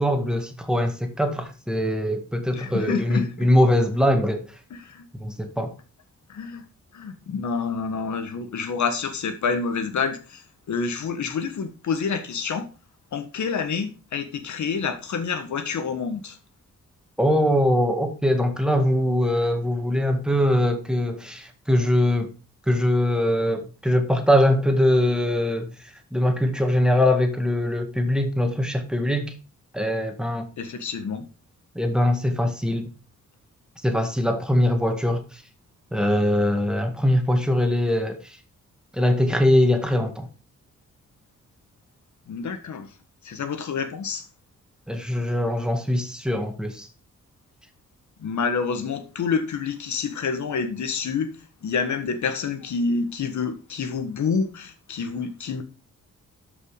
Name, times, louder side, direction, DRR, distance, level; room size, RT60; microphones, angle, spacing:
voice 1, 0.0-4.4 5.2-5.7 17.2-22.3 22.7-25.7 26.1-29.3 29.7-30.5 31.8-32.9 33.8-35.4 35.9-38.4 38.9-40.3 44.9-46.9, left 1 dB, 5° right, 1.9 m, -22 dB
voice 2, 2.5-3.5 4.7-5.1 6.3-6.6 6.9-10.4 10.7-12.7 13.1-16.4 30.6-31.3 42.3-42.9 43.2-44.3 48.2-51.4 51.6-55.6, left 5 dB, 80° left, 1.6 m, -28 dB
12.5 x 5.7 x 5.0 m
wide cardioid pair, 125°, 29 cm